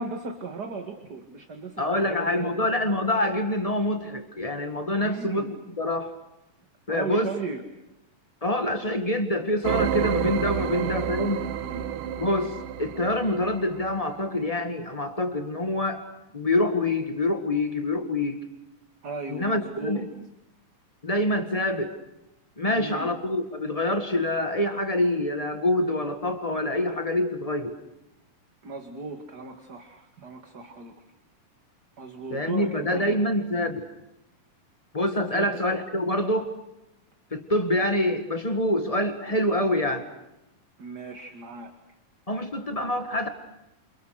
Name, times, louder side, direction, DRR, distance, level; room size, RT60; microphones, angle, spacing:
voice 1, 0.0-2.5 5.0-5.5 6.9-7.6 10.6-11.0 11.6-11.8 19.0-20.1 22.6-23.1 28.6-30.9 32.0-33.2 35.3-35.5 40.8-41.7, right 3 dB, 35° right, 5 dB, 2.2 m, -36 dB
voice 2, 1.8-6.1 6.9-7.3 8.4-11.4 12.2-16.0 16.3-18.4 19.3-20.1 21.0-21.9 22.6-27.8 32.3-33.9 34.9-36.5 37.3-40.1 42.3-43.3, left 1 dB, 25° left, 7 dB, 0.8 m, -26 dB
sound 1, 9.6-14.0, right 10 dB, 75° right, 2.6 m, -29 dB
29.0 x 28.5 x 6.5 m, 0.89 s
omnidirectional pair, 3.8 m